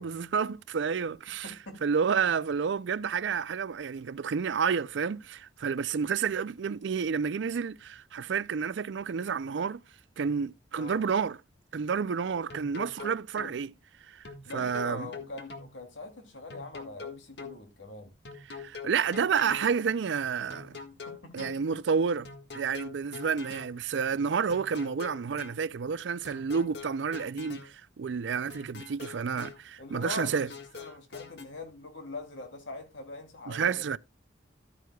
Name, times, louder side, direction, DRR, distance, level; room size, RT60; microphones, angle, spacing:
voice 1, 0.0-1.5 1.8-9.8 10.2-11.4 11.7-13.7 14.1-14.3 14.5-15.1 18.5-20.8 21.3-22.3 22.5-30.5 33.5-34.0, right 6 dB, 75° right, 0.4 m, -30 dB
voice 2, 1.4-1.8 10.8-11.1 14.4-18.1 20.7-20.8 21.0-21.5 29.8-34.0, left 2 dB, 90° left, 2.7 m, -43 dB
sound 1, 12.5-13.6 14.3-15.7 16.5-17.6 18.3-19.7 20.5-21.6 22.3-23.7 24.5-25.6 26.3-27.7 28.5-29.6 30.3-31.5, left 5 dB, 65° left, 1.6 m, -43 dB
13.0 x 9.3 x 2.3 m
head